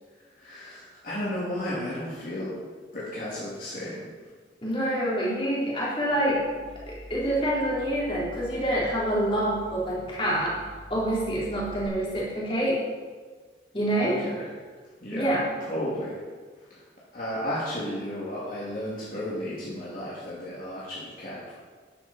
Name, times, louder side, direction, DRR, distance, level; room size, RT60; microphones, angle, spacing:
voice 1, 0.3-2.5 2.9-4.3 14.0-14.5 15.0-15.3 15.6-16.2 16.6-16.8 17.1-21.5, left 1 dB, 45° left, -8 dB, 2.9 m, -33 dB
voice 2, 4.6-6.4 6.9-10.5 10.9-12.8 13.7-14.1 15.1-15.4, right 1 dB, 30° left, -6 dB, 3.9 m, -26 dB
sound 1, 6.2-11.8, equal, 10° left, 3.0 m, -46 dB
13.0 x 11.0 x 4.5 m, 1.5 s
head